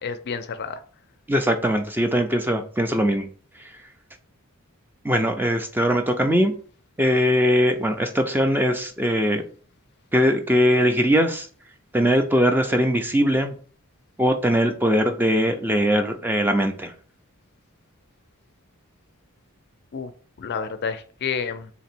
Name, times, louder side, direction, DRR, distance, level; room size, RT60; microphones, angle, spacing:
voice 1, 0.0-0.8 19.9-20.1 20.4-21.7, left 6 dB, 50° left, 10 dB, 0.4 m, -29 dB
voice 2, 1.3-3.3 5.0-6.5 7.0-9.4 10.1-11.5 11.9-13.5 14.2-16.9, equal, 10° right, 6 dB, 0.4 m, -21 dB
3.3 x 2.9 x 4.3 m, 0.42 s
head